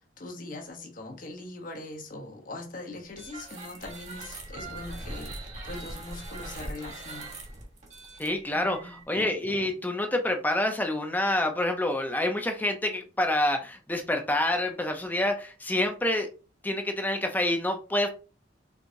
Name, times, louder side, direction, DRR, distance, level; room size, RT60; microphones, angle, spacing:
voice 1, 0.2-7.3 8.5-9.0, left 2 dB, 45° left, 1.0 m, -41 dB
sound 1, 3.1-9.0, right 2 dB, 40° right, 1.5 m, -41 dB
voice 2, 8.2-16.3 16.6-18.1, left 1 dB, 10° left, 0.7 m, -27 dB
4.7 x 4.0 x 2.7 m
head